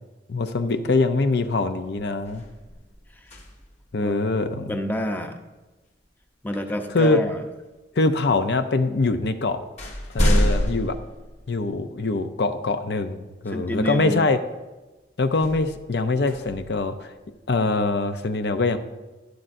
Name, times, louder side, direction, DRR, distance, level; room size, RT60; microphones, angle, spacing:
voice 1, 0.3-2.4 3.9-4.8 6.9-7.2 8.0-9.6 10.1-11.0 11.5-14.4 15.2-17.1 17.5-18.8, left 3 dB, 65° left, 8 dB, 0.6 m, -23 dB
sound 1, 1.8-3.9 6.1-6.2 7.0-7.8 8.7-8.8 9.2-12.0 12.6-12.7 15.3-17.4, equal, 40° left, 1.4 m, -28 dB
voice 2, 4.7-5.4 6.4-7.4 13.5-14.3, equal, 10° left, 5 dB, 0.7 m, -28 dB
11.5 x 11.0 x 2.6 m, 1.1 s
head